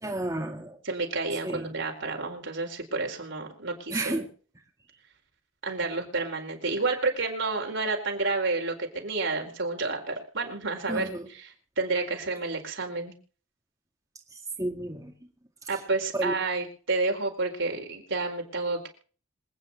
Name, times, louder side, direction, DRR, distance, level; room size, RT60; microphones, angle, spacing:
voice 1, 0.0-0.8 1.4-1.7 3.9-4.3 10.9-11.3 14.3-15.1 16.2-16.3, right 1 dB, 15° right, 0 dB, 2.1 m, -31 dB
voice 2, 0.8-4.2 5.6-11.1 11.4-11.5 11.8-13.1 15.7-18.9, right 3 dB, 65° right, 2 dB, 4.6 m, -30 dB
26.5 x 9.5 x 3.0 m, 0.41 s
head